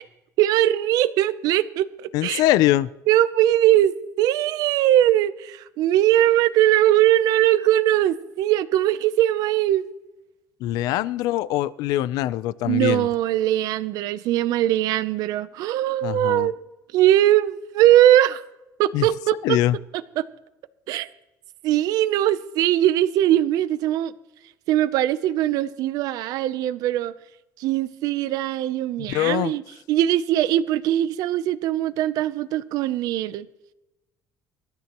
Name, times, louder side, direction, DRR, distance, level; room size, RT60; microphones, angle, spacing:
voice 1, 0.4-2.4 3.1-9.8 12.7-16.5 16.9-18.4 18.8-19.6 20.2-20.3 20.9-21.1 21.6-24.1 24.7-27.1 27.6-29.6 29.9-33.5, right 13 dB, 75° right, 0.6 m, -20 dB
voice 2, 2.1-2.9 10.6-13.1 16.0-16.5 18.9-19.0 19.4-19.8 29.1-29.5, left 14 dB, 80° left, 0.5 m, -22 dB
25.0 x 13.0 x 3.0 m
cardioid pair, 155°, 7 cm